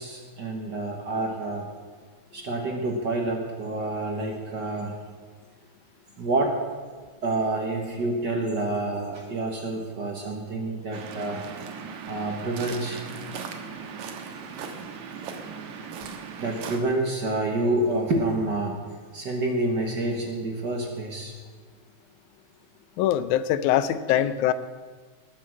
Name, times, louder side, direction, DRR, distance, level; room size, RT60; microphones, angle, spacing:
voice 1, 0.0-1.7 2.3-4.9 6.2-6.6 7.2-11.4 12.1-13.0 14.6-14.7 16.4-18.7 19.1-21.3, right 2 dB, 45° right, 2 dB, 1.5 m, -28 dB
Waves surf, 10.9-16.8, right 6 dB, 80° right, 2.6 m, -38 dB
voice 2, 23.0-24.5, left 11 dB, 85° left, 14 dB, 2.1 m, -23 dB
19.0 x 7.3 x 7.6 m, 1.5 s
omnidirectional pair, 3.4 m